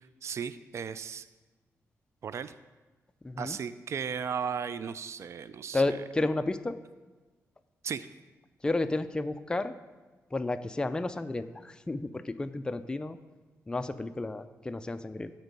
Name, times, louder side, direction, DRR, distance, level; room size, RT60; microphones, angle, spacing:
voice 1, 0.2-1.3 2.2-2.5 3.4-6.0 7.8-8.1, right 7 dB, 55° right, 14 dB, 0.4 m, -35 dB
voice 2, 3.2-3.6 5.7-6.8 8.6-9.7 10.3-13.2 13.7-15.3, left 2 dB, 15° left, 10 dB, 0.4 m, -31 dB
13.0 x 4.5 x 5.3 m, 1.3 s
cardioid pair, 100°, 6 cm